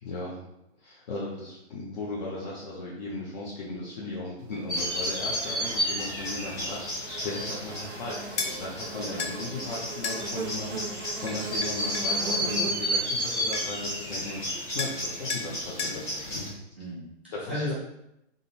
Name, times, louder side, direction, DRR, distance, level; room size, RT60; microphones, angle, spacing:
voice 1, 0.0-0.4 0.8-16.7 17.3-17.7, left 2 dB, 40° left, -6 dB, 0.7 m, -37 dB
sound 1, 4.7-16.5, equal, 10° left, 0.8 m, -32 dB
Buzz, 4.7-15.2, right 3 dB, 85° right, 0.8 m, -41 dB
sound 2, 8.4-8.5 9.2-9.4 10.0-10.2 11.3-12.1 13.2-13.3 13.5-13.9 14.8-15.0 15.3-15.5 15.8-16.0, left 5 dB, 70° left, 0.8 m, -32 dB
voice 2, 9.0-9.3 16.7-17.7, left 1 dB, 10° right, -11 dB, 0.3 m, -35 dB
3.7 x 2.1 x 4.1 m, 0.84 s
hypercardioid pair, 160°, 35 cm